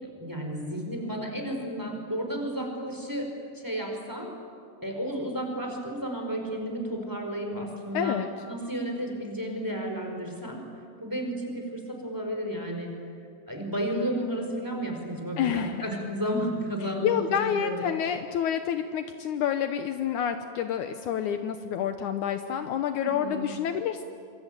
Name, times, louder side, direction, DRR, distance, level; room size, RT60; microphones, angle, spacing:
voice 1, 0.0-3.3 3.5-4.3 4.8-8.2 8.5-10.6 11.0-12.9 13.5-17.9 23.0-23.5, equal, 5° right, 2 dB, 4.1 m, -32 dB
voice 2, 7.9-8.3 15.4-15.8 17.0-24.0, left 8 dB, 85° left, 8 dB, 1.7 m, -28 dB
26.5 x 23.5 x 9.1 m, 2.4 s
omnidirectional pair, 4.8 m